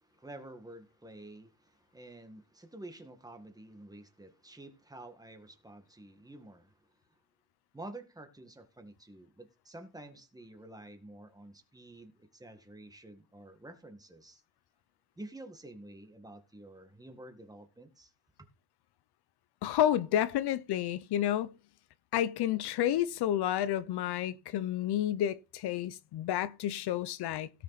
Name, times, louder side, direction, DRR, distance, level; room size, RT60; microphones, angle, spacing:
voice 1, 0.0-6.8 7.7-14.4 15.2-18.1, right 1 dB, 10° right, 1.8 m, -50 dB
voice 2, 19.6-21.5 22.1-27.5, left 11 dB, 80° left, 0.9 m, -30 dB
17.0 x 6.8 x 4.2 m
cardioid pair, 160°, 39 cm